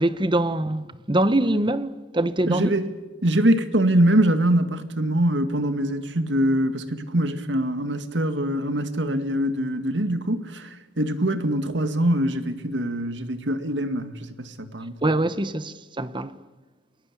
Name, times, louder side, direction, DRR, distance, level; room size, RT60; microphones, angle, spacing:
voice 1, 0.0-2.7 15.0-16.4, right 1 dB, 25° right, 1.1 m, -23 dB
voice 2, 2.5-2.9 3.2-15.0, right 1 dB, 75° right, 2.0 m, -23 dB
29.5 x 21.0 x 8.7 m
head